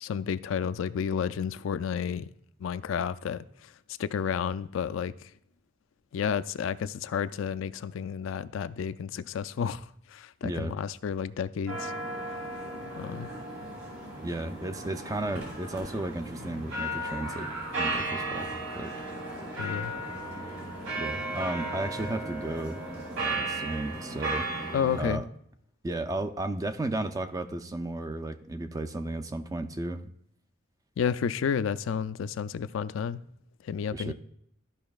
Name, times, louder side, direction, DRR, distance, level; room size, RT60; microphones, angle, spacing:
voice 1, 0.0-2.3 2.6-3.5 4.0-5.3 6.1-9.9 10.1-11.9 12.3-12.5 13.0-13.3 19.6-19.9 24.7-25.2 31.0-33.2 33.6-34.1, left 7 dB, 70° left, 0.3 m, -31 dB
voice 2, 10.4-10.8 14.2-17.5 17.8-18.5 18.7-18.9 21.0-22.8 23.2-24.5 25.0-25.3 25.8-30.1 33.9-34.1, right 2 dB, 20° right, 0.4 m, -34 dB
sound 1, 11.7-25.0, right 2 dB, 70° right, 3.2 m, -35 dB
13.5 x 5.4 x 2.4 m
head